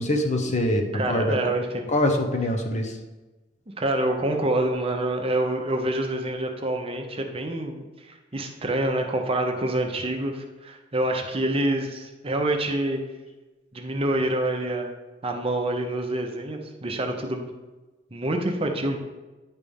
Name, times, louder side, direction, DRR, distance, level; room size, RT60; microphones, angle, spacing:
voice 1, 0.0-1.4 1.9-3.0, left 1 dB, 40° left, 4 dB, 0.9 m, -24 dB
voice 2, 0.9-1.9 3.8-13.0 13.7-14.9 15.2-17.5 18.1-19.0, right 1 dB, 30° right, 3 dB, 0.8 m, -27 dB
10.0 x 3.4 x 5.4 m, 1.2 s
head